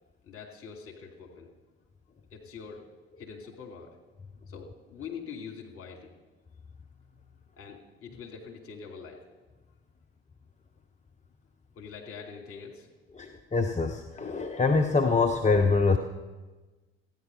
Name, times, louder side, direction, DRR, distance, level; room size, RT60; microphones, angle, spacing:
voice 1, 0.2-1.5 2.3-2.8 3.2-3.9 4.5-6.1 7.6-9.2 11.7-12.9, left 6 dB, 45° left, 1 dB, 2.9 m, -44 dB
voice 2, 13.2-16.0, left 4 dB, 25° left, 5 dB, 0.9 m, -24 dB
15.0 x 9.9 x 5.5 m, 1.2 s
figure-of-eight pair, 55°, 31 cm